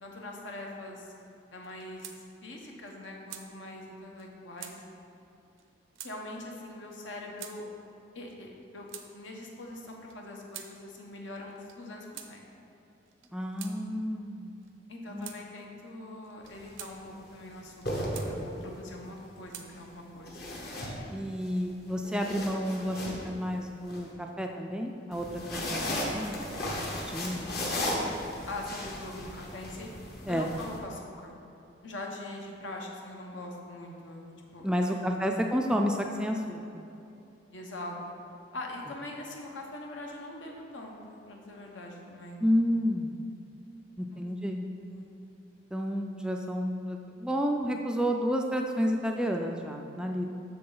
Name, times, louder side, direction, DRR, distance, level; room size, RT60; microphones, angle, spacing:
voice 1, 0.0-1.1 1.5-4.8 6.0-7.7 8.1-12.4 14.9-20.4 28.5-29.9 30.3-31.3 31.8-35.1 37.5-38.0 38.5-42.4 44.1-44.3 44.8-45.1, left 2 dB, 75° left, 0 dB, 1.1 m, -42 dB
sound 1, 1.6-2.2 2.5-2.6 2.9-3.5 4.2-4.3 4.6-4.8 5.6-5.7 5.9-6.1 6.9-7.0 7.4-7.6 8.3-9.1 9.9-10.7 11.5-11.8 12.1-12.3 13.1-13.8 14.6-14.8 15.2-15.4 16.2-16.9 17.6-18.3 19.0-19.7 20.5-21.0, right 10 dB, 85° right, 0.6 m, -46 dB
voice 2, 13.3-14.6 15.1-15.3 21.1-23.0 23.2-26.4 27.1-27.8 28.1-28.2 30.3-30.5 34.6-36.8 42.4-43.2 44.0-44.7 45.7-50.3, equal, 5° right, 2 dB, 0.3 m, -30 dB
sound 2, 16.4-16.7 17.6-18.8 20.3-21.5 21.9-24.0 25.1-30.8, left 1 dB, 55° left, 1.2 m, -35 dB
7.6 x 6.5 x 3.9 m, 2.7 s
head